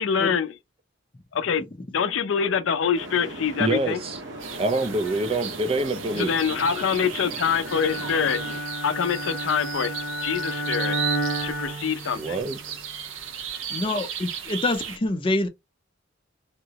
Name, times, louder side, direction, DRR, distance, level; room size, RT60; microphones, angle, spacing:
voice 1, 0.0-0.5 1.3-4.0 6.2-8.4 8.8-9.9 10.2-11.0 11.4-12.4, left 7 dB, 75° left, 0.4 m, -25 dB
sound 1, 2.9-8.6, right 1 dB, 65° right, 1.1 m, -38 dB
voice 2, 3.6-4.2 4.6-6.3 12.2-12.9, right 2 dB, 30° right, 0.5 m, -26 dB
sound 2, 4.4-15.0, right 8 dB, 85° right, 0.6 m, -36 dB
Bowed string instrument, 7.6-12.6, equal, 55° left, 0.8 m, -31 dB
voice 3, 13.7-15.5, left 2 dB, 25° left, 0.5 m, -26 dB
3.5 x 2.0 x 2.8 m
head